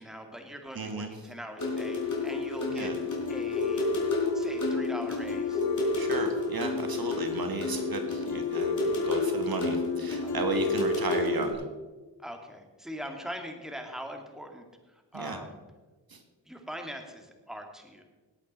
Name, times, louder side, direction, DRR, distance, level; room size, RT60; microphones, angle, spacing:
voice 1, 0.0-2.9 3.3-3.9 4.3-5.6 10.2-10.6 12.2-14.7 14.9-15.6 16.5-18.0, equal, ahead, 3 dB, 2.2 m, -42 dB
voice 2, 0.7-1.1 2.7-2.9 6.0-11.6 15.1-15.4 16.1-16.2, right 3 dB, 55° right, 6 dB, 1.6 m, -34 dB
sound 1, 1.6-11.5, left 3 dB, 45° left, 4.3 m, -29 dB
19.0 x 8.5 x 4.3 m, 1.3 s
cardioid pair, 65°, 44 cm